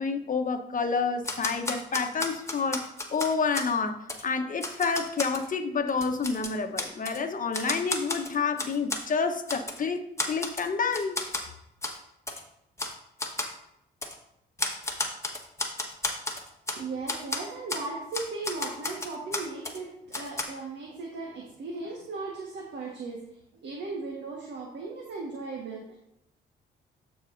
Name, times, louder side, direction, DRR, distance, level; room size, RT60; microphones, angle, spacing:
voice 1, 0.0-2.8 3.1-11.2, left 5 dB, 40° left, 6 dB, 1.1 m, -29 dB
Typewriter, 1.2-3.7 4.1-4.2 4.6-5.5 5.9-7.2 7.5-9.0 9.5-9.8 10.2-10.7 10.9-11.5 11.8-12.0 12.3-12.4 12.8-12.9 13.2-13.5 14.0-14.2 14.6-16.8 17.1-17.4 17.7-17.9 18.1-19.8 20.1-20.4, left 2 dB, 15° left, 1.4 m, -32 dB
voice 2, 16.7-23.2 23.6-26.0, right 3 dB, 60° right, -2 dB, 1.5 m, -37 dB
13.0 x 4.8 x 2.7 m, 0.81 s
supercardioid pair, 60°, 21 cm